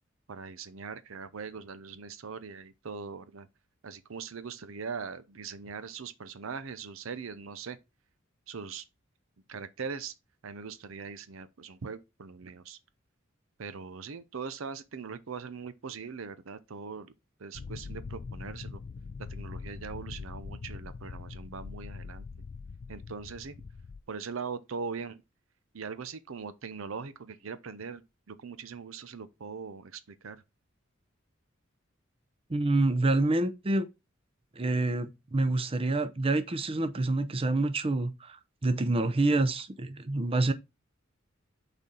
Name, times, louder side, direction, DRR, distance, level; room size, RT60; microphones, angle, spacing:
voice 1, 0.3-3.5 3.8-7.8 8.5-8.8 9.5-10.1 10.4-12.8 13.6-17.1 17.4-18.8 19.2-22.3 22.9-23.6 24.1-25.2 25.7-28.0 28.3-30.4, right 5 dB, 80° right, 0.6 m, -41 dB
sound 1, 17.5-24.0, left 4 dB, 45° left, 0.4 m, -42 dB
voice 2, 32.5-33.9 34.6-40.5, right 2 dB, 30° right, 0.6 m, -27 dB
6.8 x 4.2 x 3.7 m
head